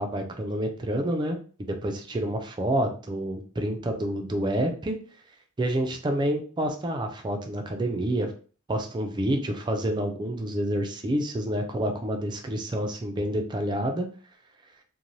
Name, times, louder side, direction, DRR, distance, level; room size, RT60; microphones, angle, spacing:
voice 1, 0.0-5.0 5.6-8.3 8.7-14.1, right 1 dB, 20° right, 4 dB, 0.4 m, -28 dB
2.6 x 2.2 x 3.0 m, 0.40 s
head